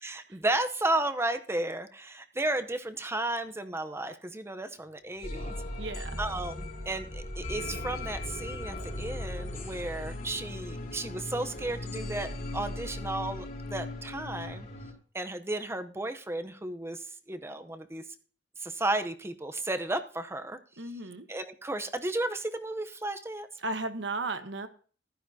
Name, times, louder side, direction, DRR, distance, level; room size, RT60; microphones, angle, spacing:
voice 1, 0.0-5.5 6.2-14.7 15.1-18.0 18.6-20.6 21.3-23.5, right 2 dB, 15° right, 9 dB, 0.8 m, -33 dB
sound 1, 5.2-14.9, left 1 dB, 55° left, 3.9 m, -38 dB
voice 2, 5.8-6.2 20.8-21.2 23.6-24.7, right 2 dB, 70° right, 8 dB, 1.2 m, -34 dB
15.0 x 12.0 x 2.8 m, 0.41 s
head